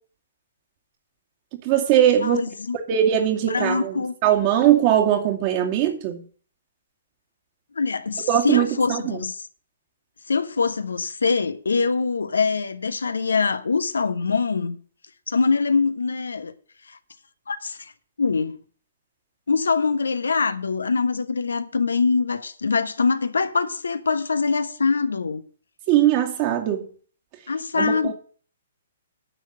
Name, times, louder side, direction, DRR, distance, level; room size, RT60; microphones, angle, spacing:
voice 1, 1.6-2.4 2.9-6.2 8.3-9.2 25.9-26.9 27.7-28.1, right 11 dB, 35° right, 2.4 m, -20 dB
voice 2, 2.2-2.8 3.5-4.2 7.8-9.3 10.3-14.8 15.3-16.5 16.9-17.0 17.5-17.9 18.2-18.6 19.5-25.4 27.5-28.1, left 4 dB, 70° left, 1.1 m, -23 dB
10.0 x 6.6 x 7.7 m
figure-of-eight pair, 120°, 0 cm